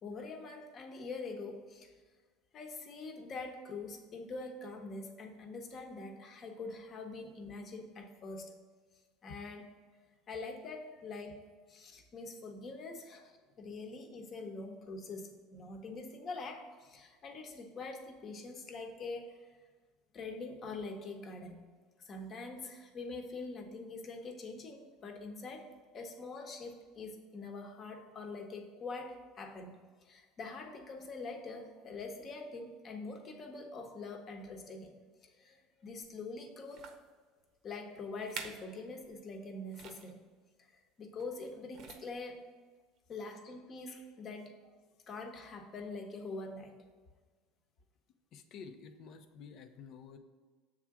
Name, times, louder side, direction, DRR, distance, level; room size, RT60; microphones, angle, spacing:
voice 1, 0.0-1.9 2.5-8.5 9.2-11.4 11.7-19.5 20.1-21.6 22.0-29.7 30.0-34.9 35.2-36.9 37.6-40.2 40.6-42.4 43.1-44.5 45.1-46.7, left 3 dB, 35° left, 4 dB, 1.1 m, -44 dB
sound 1, 36.0-36.1 36.7-37.1 37.8-37.9 38.2-38.7 39.0-39.2 39.7-40.1 41.2-41.4 41.7-42.3 43.0-43.1, right 6 dB, 55° right, 0.8 m, -48 dB
voice 2, 48.3-50.2, left 6 dB, 55° left, 8 dB, 0.7 m, -50 dB
7.1 x 3.7 x 5.9 m, 1.4 s
supercardioid pair, 125°, 0 cm